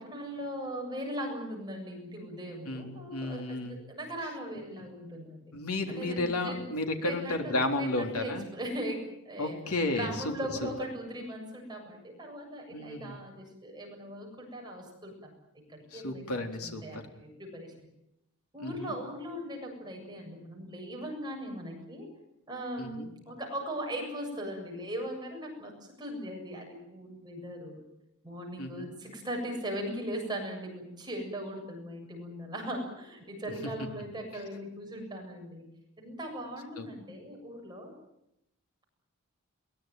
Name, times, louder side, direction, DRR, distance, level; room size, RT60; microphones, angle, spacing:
voice 1, 0.0-5.4 5.9-6.7 7.0-9.6 9.9-15.3 15.7-17.7 18.5-22.1 22.5-27.8 28.2-35.6 36.0-37.9, equal, 20° right, 1 dB, 7.4 m, -39 dB
voice 2, 2.7-3.8 5.5-8.5 9.4-10.3 10.6-10.7 12.7-13.2 15.9-17.0 18.6-18.9 22.8-23.1 28.6-28.9 36.8-36.9, left 2 dB, 85° left, 4 dB, 3.9 m, -33 dB
22.5 x 21.0 x 9.3 m, 0.82 s
head